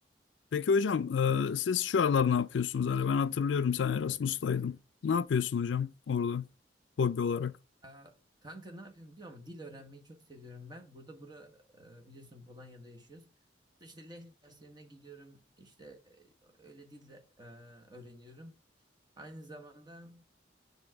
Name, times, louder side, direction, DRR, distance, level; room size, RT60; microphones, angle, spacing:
voice 1, 0.5-4.8 5.0-6.5 7.0-7.5, left 6 dB, 75° left, 0.4 m, -29 dB
voice 2, 7.8-13.3 13.8-18.6 19.2-20.2, right 1 dB, 25° right, 1.3 m, -51 dB
7.2 x 3.5 x 4.6 m
head